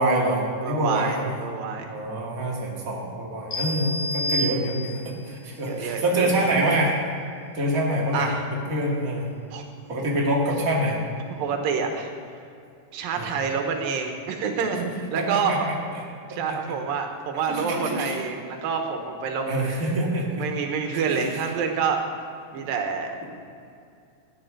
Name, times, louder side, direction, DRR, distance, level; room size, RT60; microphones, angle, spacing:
voice 1, 0.0-1.3 1.9-6.9 7.5-8.3 8.7-9.3 9.9-11.0 13.1-13.3 15.3-15.6 16.5-16.6 17.5-18.2 19.5-20.4 20.9-21.4, right 1 dB, 25° right, -4 dB, 2.6 m, -25 dB
voice 2, 0.6-1.9 5.6-6.7 8.1-8.4 9.5-9.6 11.4-12.1 12.9-15.7 16.3-19.5 20.0-22.0 22.5-23.1, right 5 dB, 85° right, 4 dB, 2.9 m, -28 dB
sound 1, 3.5-5.2, equal, 55° left, 3.8 m, -29 dB
13.5 x 9.9 x 6.6 m, 2.4 s
omnidirectional pair, 4.0 m